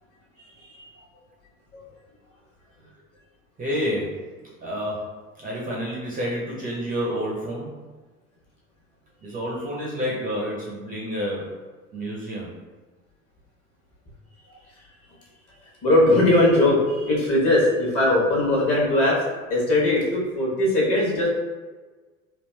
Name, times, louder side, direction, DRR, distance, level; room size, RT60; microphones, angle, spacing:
voice 1, 3.6-5.1 5.4-7.7 9.2-11.5 11.9-12.6, equal, 20° right, -4 dB, 0.5 m, -29 dB
voice 2, 15.8-19.1 19.5-21.3, left 1 dB, 35° left, -4 dB, 1.1 m, -20 dB
3.3 x 2.4 x 2.2 m, 1.3 s
figure-of-eight pair, 75°, 41 cm